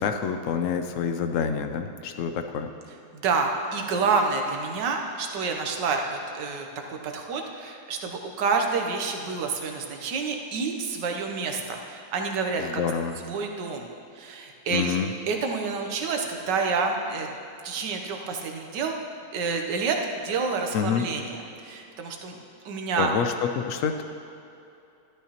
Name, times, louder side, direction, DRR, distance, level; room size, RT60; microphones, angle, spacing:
voice 1, 0.0-2.7 12.6-13.2 14.7-15.1 20.7-21.0 23.0-24.0, left 7 dB, 70° left, 7 dB, 0.8 m, -27 dB
voice 2, 3.1-12.8 13.2-13.9 14.1-15.0 15.3-17.3 17.6-19.0 19.3-20.0 20.2-21.4 21.6-22.4 22.6-23.1, right 4 dB, 90° right, 3 dB, 1.6 m, -28 dB
12.0 x 12.0 x 2.9 m, 2.7 s
omnidirectional pair, 1.8 m